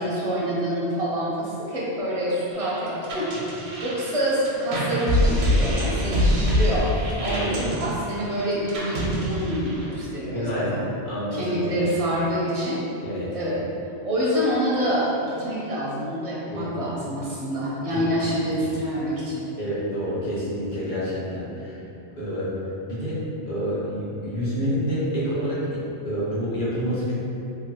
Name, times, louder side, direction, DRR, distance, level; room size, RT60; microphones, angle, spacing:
voice 1, 0.0-3.3 3.8-10.9 11.3-12.8 13.3-13.6 14.0-19.5, equal, 45° right, -7 dB, 0.5 m, -26 dB
sound 1, 2.5-10.0, equal, 90° right, 1.0 m, -25 dB
voice 2, 5.6-6.1 7.2-7.6 10.3-10.7 11.0-11.7 13.0-13.3 16.5-16.7 17.9-18.0 18.6-18.7 19.6-21.7 22.2-22.5 22.9-27.1, equal, 45° left, -10 dB, 1.0 m, -28 dB
3.1 x 2.3 x 2.9 m, 2.9 s
omnidirectional pair, 1.2 m